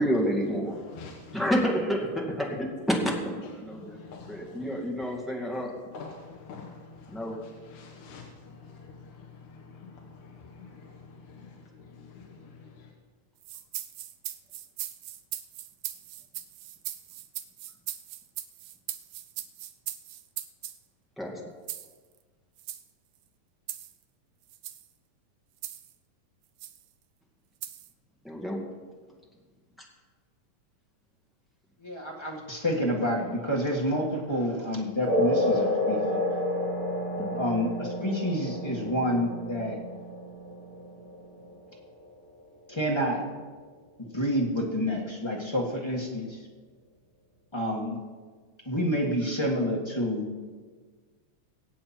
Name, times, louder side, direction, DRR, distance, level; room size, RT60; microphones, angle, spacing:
voice 1, 0.0-0.7 1.3-2.9 3.2-4.0 4.3-5.8 7.1-7.4 21.2-21.4 28.2-28.6 37.2-37.4, equal, ahead, -2 dB, 1.4 m, -29 dB
voice 2, 0.7-1.4 3.7-5.5 5.9-12.9, left 4 dB, 65° left, -1 dB, 2.5 m, -47 dB
sound 1, 13.4-20.8 21.7-21.9 22.6-22.8 23.7-23.9 24.5-24.9 25.6-25.9 26.6-26.8 27.6-27.9, right 13 dB, 80° right, 1.6 m, -39 dB
voice 3, 31.8-36.2 37.3-39.8 42.7-43.2 44.0-46.4 47.5-48.0 48.6-50.2, equal, 35° left, -3 dB, 0.4 m, -28 dB
sound 2, 35.0-42.0, left 1 dB, 55° right, 4.9 m, -30 dB
23.5 x 8.6 x 4.4 m, 1.5 s
omnidirectional pair, 3.9 m